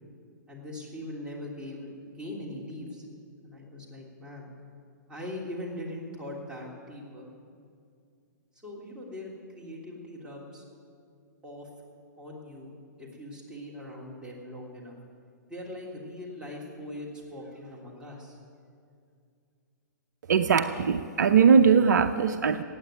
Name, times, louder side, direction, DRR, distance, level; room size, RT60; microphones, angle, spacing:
voice 1, 0.5-3.0 3.4-4.5 5.1-7.3 8.6-10.6 11.4-11.7 12.2-12.7 13.0-15.0 15.5-18.4, left 1 dB, 10° right, -3 dB, 3.4 m, -41 dB
voice 2, 20.3-22.6, right 6 dB, 70° right, 10 dB, 0.7 m, -20 dB
16.0 x 9.1 x 9.3 m, 2.4 s
hypercardioid pair, 120°, 10 cm